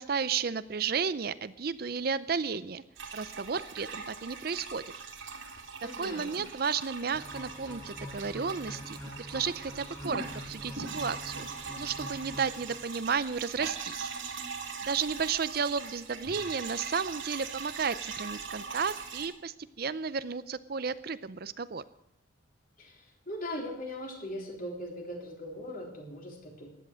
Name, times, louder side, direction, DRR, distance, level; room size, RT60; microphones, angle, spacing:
voice 1, 0.0-2.8 3.1-4.8 6.0-9.0 9.3-11.5 11.8-14.1 14.8-21.8, right 5 dB, 45° right, 15 dB, 0.5 m, -33 dB
sound 1, 3.0-19.3, right 5 dB, 70° right, 2.5 m, -41 dB
voice 2, 5.8-6.3 22.8-26.7, left 1 dB, 45° left, 1 dB, 3.7 m, -40 dB
sound 2, 7.1-13.1, equal, 15° left, 4.8 m, -45 dB
15.5 x 11.0 x 6.3 m, 0.80 s
head